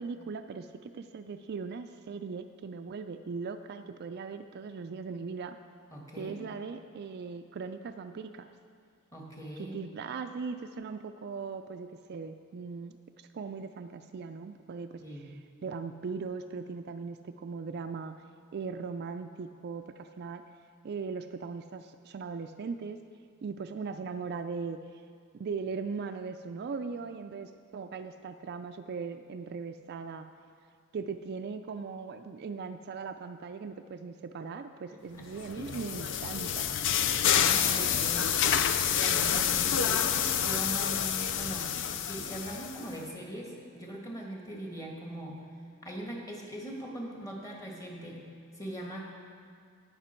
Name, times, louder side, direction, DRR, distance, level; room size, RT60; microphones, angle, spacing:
voice 1, 0.0-5.6 6.2-8.5 9.6-15.0 15.6-18.1 18.5-20.5 20.8-23.0 23.4-25.0 25.3-30.3 30.9-36.7 37.8-38.1, right 5 dB, 50° right, 8 dB, 0.4 m, -39 dB
voice 2, 5.9-6.4 9.1-9.9 15.0-15.3 34.9-35.3 35.6-36.1 37.3-38.4 38.9-41.7 42.0-45.4 45.8-48.2 48.5-49.1, right 1 dB, 15° left, -1 dB, 1.6 m, -41 dB
sound 1, 35.4-42.9, left 8 dB, 60° left, 0.5 m, -28 dB
18.0 x 6.0 x 4.4 m, 2.2 s
head